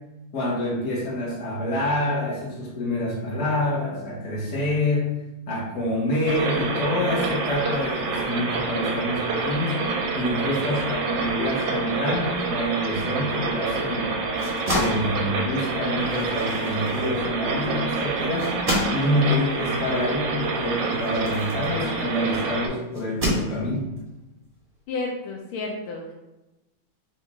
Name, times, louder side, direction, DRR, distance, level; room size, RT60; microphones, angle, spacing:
voice 1, 0.3-5.2 5.5-14.1 14.7-18.6 18.9-23.9, left 1 dB, 40° left, -5 dB, 1.3 m, -27 dB
sound 1, 6.3-22.7, right 4 dB, 70° right, 1.1 m, -27 dB
sound 2, 14.2-22.3 22.9-24.0, equal, 25° right, 0.8 m, -31 dB
voice 2, 24.9-26.1, left 3 dB, 80° left, 0 dB, 1.4 m, -31 dB
4.2 x 2.8 x 3.4 m, 1.0 s
omnidirectional pair, 2.4 m